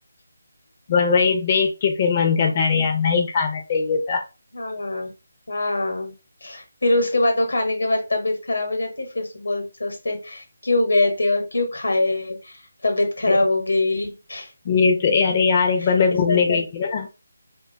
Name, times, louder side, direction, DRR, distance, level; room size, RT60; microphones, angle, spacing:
voice 1, 0.9-4.2 13.3-13.4 14.6-17.1, left 5 dB, 30° left, 3 dB, 0.4 m, -20 dB
voice 2, 4.5-5.1 5.5-6.1 6.4-12.6 12.8-14.5 15.8-15.9 16.3-16.6, left 2 dB, 80° left, 4 dB, 0.9 m, -23 dB
2.5 x 2.2 x 2.5 m, 0.29 s
figure-of-eight pair, 165°, 0 cm